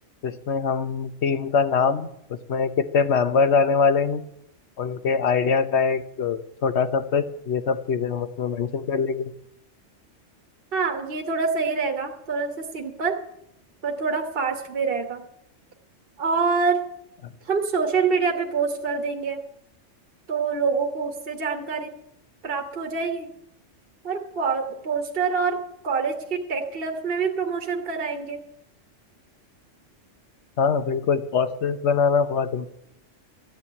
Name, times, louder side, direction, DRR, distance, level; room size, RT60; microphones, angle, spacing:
voice 1, 0.2-4.2 4.8-9.3 30.6-32.7, left 5 dB, 65° left, 11 dB, 1.2 m, -23 dB
voice 2, 10.7-13.2 13.8-15.2 16.2-16.8 17.4-19.4 20.3-21.9 22.4-23.3 24.0-28.4, right 5 dB, 50° right, 3 dB, 1.4 m, -26 dB
14.0 x 8.7 x 8.5 m, 0.75 s
omnidirectional pair, 1.3 m